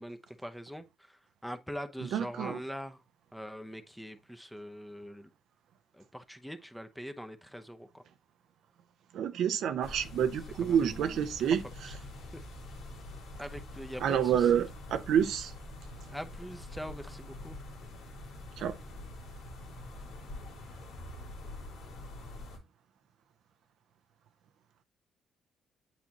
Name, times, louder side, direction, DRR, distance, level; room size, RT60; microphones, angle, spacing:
voice 1, 0.0-3.0 3.3-5.3 5.9-8.0 10.6-11.3 11.8-11.9 12.3-12.5 13.4-14.7 16.1-17.6, equal, ahead, 0.8 m, -43 dB
voice 2, 2.0-2.6 9.1-11.6 14.0-15.5 18.6-18.7, right 8 dB, 75° right, 0.5 m, -28 dB
sound 1, 9.8-22.6, left 2 dB, 85° left, 2.4 m, -45 dB
8.3 x 4.1 x 2.9 m
cardioid pair, 90°, 0 cm